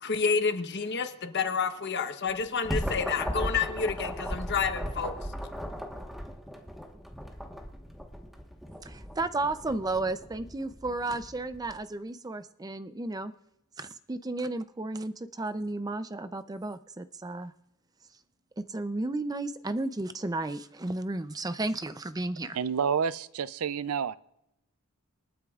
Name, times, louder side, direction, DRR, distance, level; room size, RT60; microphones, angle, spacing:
voice 1, 0.0-5.3, left 5 dB, 50° left, 7 dB, 1.0 m, -29 dB
sound 1, 2.3-11.7, equal, ahead, 1.2 m, -37 dB
voice 2, 8.8-13.3 13.8-17.5 18.6-22.6, right 2 dB, 15° right, 11 dB, 0.5 m, -33 dB
voice 3, 22.5-24.2, right 6 dB, 80° right, 17 dB, 0.4 m, -29 dB
27.5 x 9.4 x 2.4 m, 0.83 s
head